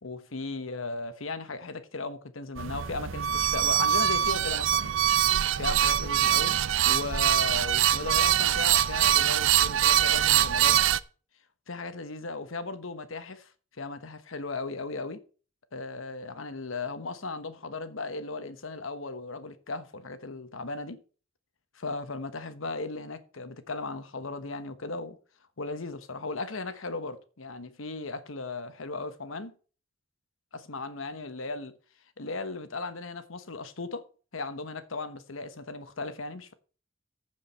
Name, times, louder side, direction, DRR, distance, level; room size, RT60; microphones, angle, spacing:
voice 1, 0.0-4.9 5.6-6.5 6.8-10.8 11.7-13.5 13.8-15.2 15.7-21.0 21.7-25.2 25.6-29.5 30.5-31.7 32.2-34.1 34.3-36.5, left 3 dB, 90° left, 1.2 m, -36 dB
sound 1, 2.6-11.0, right 11 dB, 75° right, 0.5 m, -24 dB
14.5 x 5.0 x 5.5 m
head